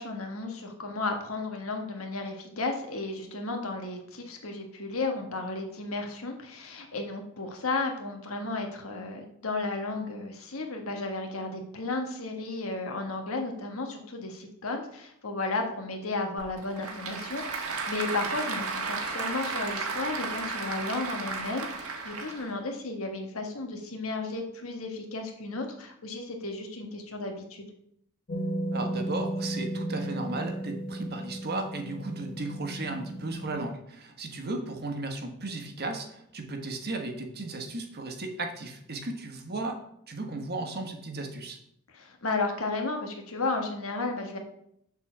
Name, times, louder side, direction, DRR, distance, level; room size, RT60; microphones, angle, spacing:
voice 1, 0.0-27.7 41.9-44.4, left 3 dB, 70° left, 3 dB, 1.5 m, -33 dB
Applause / Crowd, 16.4-22.6, right 4 dB, 90° right, 1.5 m, -34 dB
sound 1, 28.3-33.6, right 1 dB, 45° left, 1.0 m, -34 dB
voice 2, 28.7-39.8 40.1-41.6, right 2 dB, 50° right, 4 dB, 1.3 m, -35 dB
7.1 x 4.2 x 6.7 m, 0.72 s
head